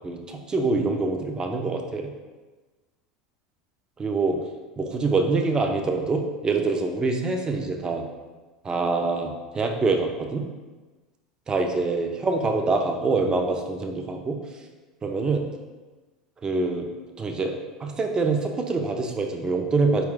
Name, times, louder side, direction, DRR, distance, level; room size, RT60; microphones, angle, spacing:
voice 1, 0.0-2.1 4.0-4.4 4.8-8.0 8.6-10.5 11.5-14.4 15.0-15.4 16.4-16.9 17.2-17.5 17.8-20.0, right 3 dB, 20° right, 3 dB, 0.5 m, -25 dB
4.4 x 2.3 x 3.6 m, 1.3 s
figure-of-eight pair, 75°, 4 cm